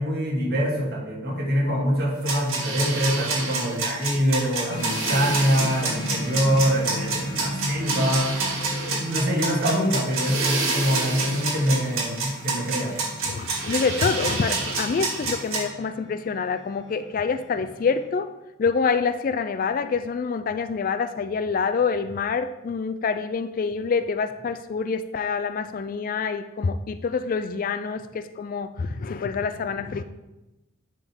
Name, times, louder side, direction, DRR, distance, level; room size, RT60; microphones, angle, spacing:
voice 1, 0.0-8.3 8.9-13.0, equal, 50° right, 1.9 m, -24 dB
sound 1, 2.3-15.6, right 4 dB, 90° right, 2.0 m, -27 dB
sound 2, 4.7-18.1, left 1 dB, 20° left, 1.0 m, -36 dB
voice 2, 13.2-18.3 18.6-30.0, left 5 dB, 40° left, 0.3 m, -26 dB
10.5 x 3.7 x 4.3 m
head